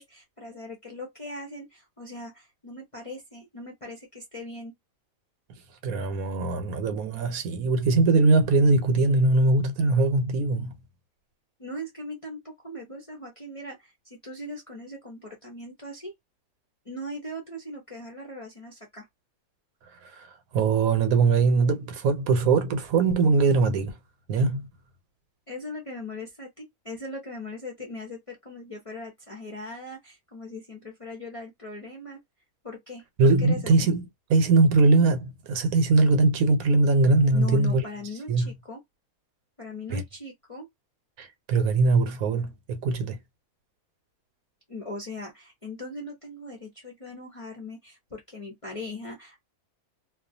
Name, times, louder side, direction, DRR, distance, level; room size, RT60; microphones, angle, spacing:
voice 1, 0.0-4.7 11.6-16.1 16.8-19.1 25.5-32.2 32.6-33.0 33.4-33.9 37.3-38.8 39.6-40.7 44.7-49.4, left 2 dB, 35° left, 0.6 m, -39 dB
voice 2, 5.8-10.7 20.0-24.0 24.3-24.7 33.2-34.0 34.3-37.8 38.3-38.5 39.9-40.0 41.2-43.2, right 3 dB, 75° right, 1.1 m, -21 dB
2.4 x 2.3 x 2.5 m
omnidirectional pair, 1.5 m